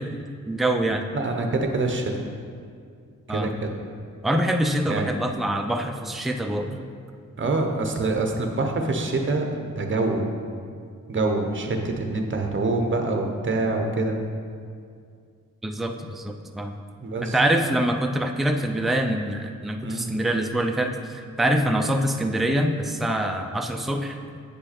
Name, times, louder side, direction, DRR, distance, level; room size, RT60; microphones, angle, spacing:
voice 1, 0.0-1.0 3.3-3.5 4.2-6.7 15.6-16.7 17.2-24.2, right 1 dB, ahead, 4 dB, 0.4 m, -25 dB
voice 2, 1.1-2.2 3.3-3.8 4.9-5.4 6.6-6.8 7.4-10.2 11.1-14.2 17.0-17.3 19.8-20.1 21.5-21.6, right 2 dB, 40° right, 3 dB, 0.9 m, -26 dB
8.1 x 5.5 x 4.2 m, 2.2 s
wide cardioid pair, 105°, 30 cm